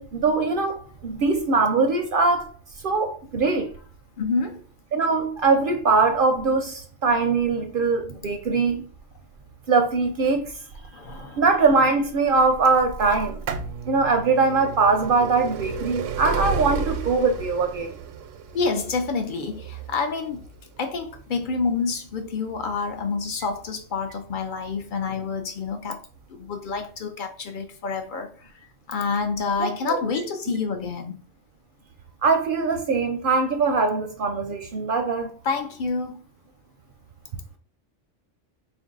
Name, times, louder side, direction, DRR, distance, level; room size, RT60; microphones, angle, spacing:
voice 1, 0.0-2.5 2.8-3.7 4.9-8.9 9.7-10.4 11.1-13.4 13.9-17.9 29.6-30.0 32.2-35.3, right 4 dB, 60° right, 0.6 m, -22 dB
voice 2, 4.2-4.6 10.9-11.4 18.5-20.5 20.8-26.0 26.3-31.2 35.4-36.2, left 4 dB, 60° left, 0.5 m, -28 dB
sound 1, 13.1-24.8 25.6-25.7 26.7-26.8 26.9-27.0, right 6 dB, 85° right, 0.9 m, -33 dB
3.9 x 2.6 x 3.8 m
omnidirectional pair, 1.2 m